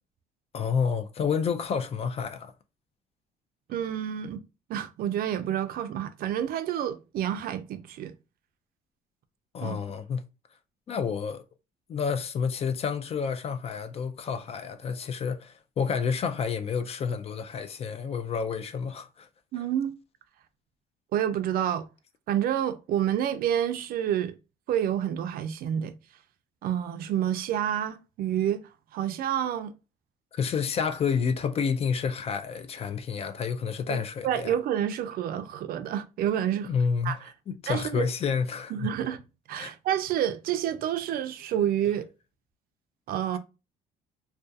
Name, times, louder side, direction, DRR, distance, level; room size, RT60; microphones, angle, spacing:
voice 1, 0.5-2.5 9.5-10.2 10.9-11.4 11.9-19.3 30.3-34.6 36.6-37.2 37.5-38.9 39.6-39.7, left 6 dB, 35° left, 0.3 m, -29 dB
voice 2, 3.7-4.4 4.7-8.1 9.6-9.8 19.5-19.9 21.1-21.9 22.3-24.3 24.7-25.9 26.6-28.6 28.9-29.7 33.9-34.0 34.2-36.7 37.0-37.3 37.7-38.1 38.7-39.2 39.5-42.0 43.1-43.4, right 10 dB, 60° right, 0.4 m, -28 dB
2.3 x 2.2 x 2.6 m
cardioid pair, 110°, 17 cm